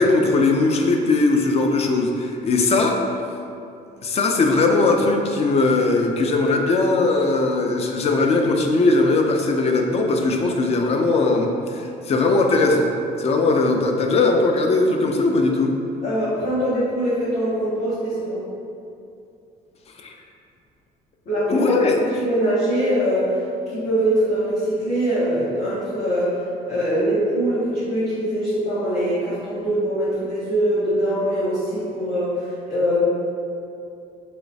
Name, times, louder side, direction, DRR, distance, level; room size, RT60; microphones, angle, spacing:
voice 1, 0.0-3.0 4.0-12.9 13.2-15.7 20.0-20.1 21.5-22.0, left 3 dB, 40° left, 3 dB, 0.4 m, -19 dB
voice 2, 16.0-18.4 21.2-21.8 22.2-23.3 23.7-26.3 26.7-32.3 32.7-33.0, right 1 dB, 65° left, -15 dB, 1.4 m, -22 dB
3.1 x 2.9 x 2.6 m, 2.6 s
cardioid pair, 110°, 17 cm